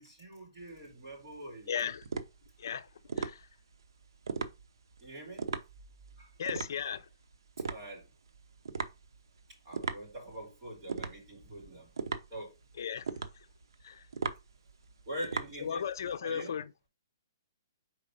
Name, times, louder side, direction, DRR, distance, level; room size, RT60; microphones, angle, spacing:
voice 1, 0.0-1.7 5.0-5.5 6.2-6.3 7.7-8.0 9.6-11.9 12.3-12.5 15.1-15.8 16.2-16.6, equal, 30° right, 4.3 m, -43 dB
sound 1, 0.6-16.2, right 5 dB, 80° right, 0.8 m, -40 dB
voice 2, 1.7-2.0 2.6-2.9 3.2-3.4 6.4-7.0 12.8-13.0 13.8-14.0 15.6-16.7, left 8 dB, 55° left, 0.6 m, -35 dB
4.8 x 4.3 x 5.1 m
hypercardioid pair, 175°, 2 cm